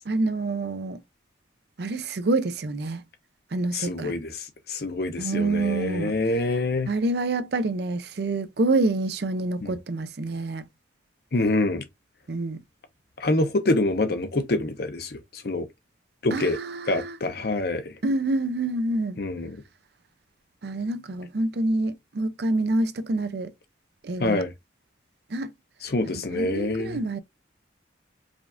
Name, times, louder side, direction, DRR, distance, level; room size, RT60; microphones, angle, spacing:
voice 1, 0.1-1.0 1.8-3.0 3.5-4.1 5.2-6.1 6.9-10.7 12.3-12.6 16.3-17.2 18.0-19.2 20.6-23.5 24.0-24.4 25.3-25.5 26.1-27.2, right 2 dB, 55° right, 0.5 m, -27 dB
voice 2, 3.7-6.9 9.6-9.7 11.3-11.8 13.2-15.7 16.2-16.6 16.9-17.9 19.2-19.6 24.2-24.5 25.8-27.0, left 2 dB, 55° left, 0.7 m, -26 dB
5.0 x 2.4 x 2.5 m
head